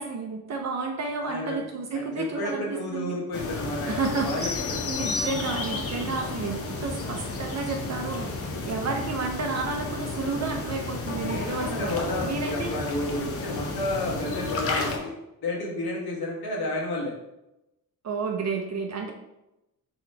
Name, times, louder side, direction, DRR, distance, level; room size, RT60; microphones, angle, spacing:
voice 1, 0.0-3.2 3.8-11.9 12.2-12.7 18.0-19.1, right 4 dB, 45° right, 3 dB, 0.6 m, -31 dB
voice 2, 1.2-1.6 1.9-4.8 11.3-15.1 15.4-17.1, left 1 dB, 80° left, -2 dB, 1.3 m, -31 dB
sound 1, 3.3-15.0, left 3 dB, 40° left, 0.6 m, -32 dB
sound 2, 4.4-5.9, left 4 dB, 10° left, 1.2 m, -34 dB
4.0 x 3.0 x 4.4 m, 0.90 s
wide cardioid pair, 170°, 37 cm